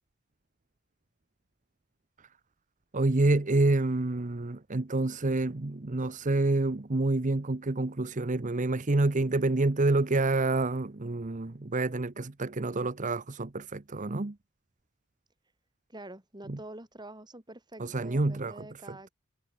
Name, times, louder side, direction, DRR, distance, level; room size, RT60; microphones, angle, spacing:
voice 1, 2.9-14.4 16.5-16.6 17.8-19.0, right 2 dB, 35° right, 0.9 m, -28 dB
voice 2, 15.9-19.1, right 1 dB, 20° right, 7.0 m, -46 dB
head